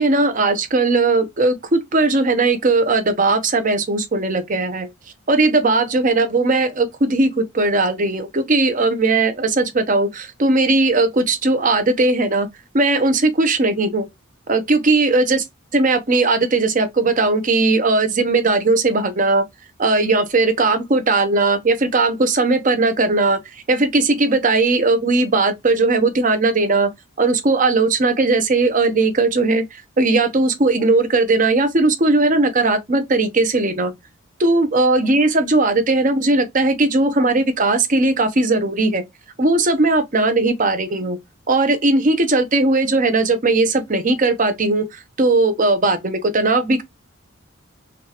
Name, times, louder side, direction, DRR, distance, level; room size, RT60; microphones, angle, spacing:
voice 1, 0.0-4.9 5.3-12.5 12.7-14.1 14.5-15.4 15.7-19.4 19.8-23.4 23.7-26.9 27.2-29.6 30.0-33.9 34.4-39.0 39.4-41.2 41.5-46.8, right 3 dB, 40° right, 0.8 m, -18 dB
6.1 x 2.4 x 2.9 m
head